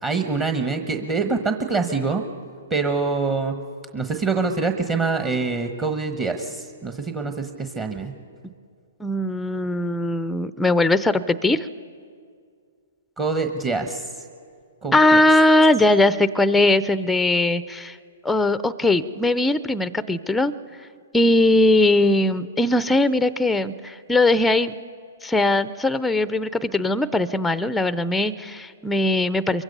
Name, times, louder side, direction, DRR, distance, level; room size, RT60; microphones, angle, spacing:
voice 1, 0.0-2.2 2.7-3.6 3.9-8.1 13.2-14.0 14.8-15.0, right 4 dB, 20° right, 5 dB, 1.2 m, -25 dB
voice 2, 9.0-11.7 14.9-18.0 18.2-20.5 21.1-24.8 25.2-29.6, left 2 dB, 5° left, 14 dB, 0.5 m, -20 dB
23.5 x 23.0 x 5.5 m, 2.1 s
hypercardioid pair, 130°, 0 cm